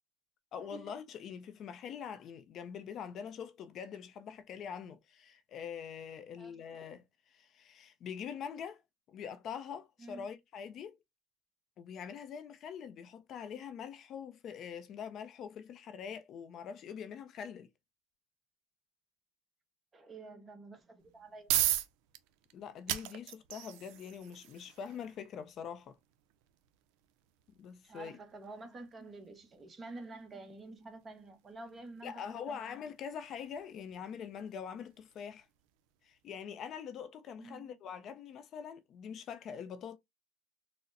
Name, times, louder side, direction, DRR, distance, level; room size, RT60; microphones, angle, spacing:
voice 1, 0.5-7.0 7.3-8.8 9.1-11.0 11.8-17.7 22.5-26.0 27.6-28.2 32.0-35.5 36.0-40.0, left 7 dB, 45° left, 0.4 m, -44 dB
voice 2, 19.9-21.5 27.8-32.8 37.4-37.8, right 2 dB, 25° right, 0.8 m, -49 dB
sound 1, 21.0-35.9, right 13 dB, 70° right, 0.4 m, -41 dB
4.0 x 2.0 x 2.5 m
supercardioid pair, 115°, 0 cm